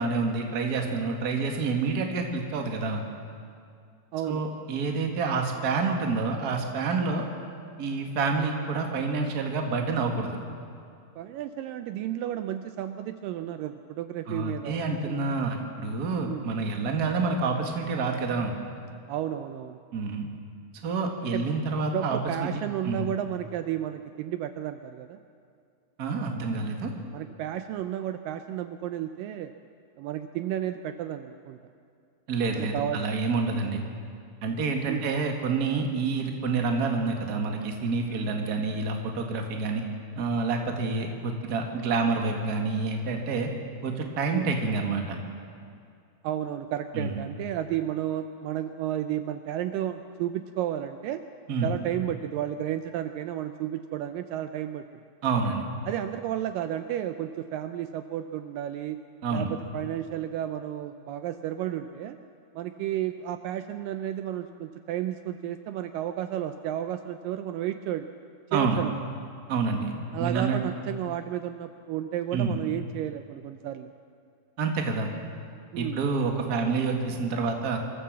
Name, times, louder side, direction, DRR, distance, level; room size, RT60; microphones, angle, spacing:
voice 1, 0.0-3.0 4.2-7.2 7.8-10.4 14.3-18.6 19.9-20.3 20.8-22.5 22.8-23.1 26.0-26.9 32.3-33.8 34.4-39.8 40.1-43.5 43.8-45.2 46.9-47.1 51.5-51.7 55.2-55.6 59.2-59.5 68.5-68.8 69.5-69.9 70.2-70.6 72.3-72.6 74.6-75.1 75.7-77.8, right 4 dB, 40° right, 3 dB, 1.5 m, -28 dB
voice 2, 4.1-4.4 11.2-15.3 16.2-16.5 19.1-19.8 21.3-21.4 21.7-25.2 27.1-29.5 30.0-31.6 32.5-33.2 33.5-33.7 34.9-35.1 44.3-44.5 46.2-51.2 51.6-54.8 55.9-59.0 59.3-62.2 62.6-68.1 68.5-69.1 70.1-73.9 75.7-76.0, right 11 dB, 80° right, 9 dB, 2.1 m, -32 dB
24.0 x 14.5 x 7.5 m, 2.3 s
omnidirectional pair, 4.3 m